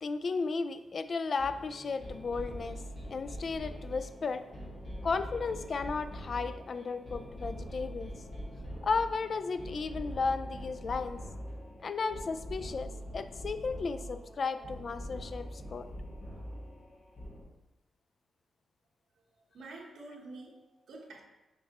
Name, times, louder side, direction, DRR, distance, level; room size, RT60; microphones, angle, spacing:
voice 1, 0.0-4.4 5.0-8.1 8.8-11.2 11.8-15.9, left 4 dB, 45° left, 11 dB, 0.3 m, -34 dB
sound 1, 1.4-17.4, equal, 30° left, 1.9 m, -43 dB
voice 2, 19.5-21.3, right 2 dB, 75° right, -2 dB, 1.1 m, -48 dB
6.5 x 5.3 x 3.0 m, 1.0 s
cardioid pair, 110°, 0 cm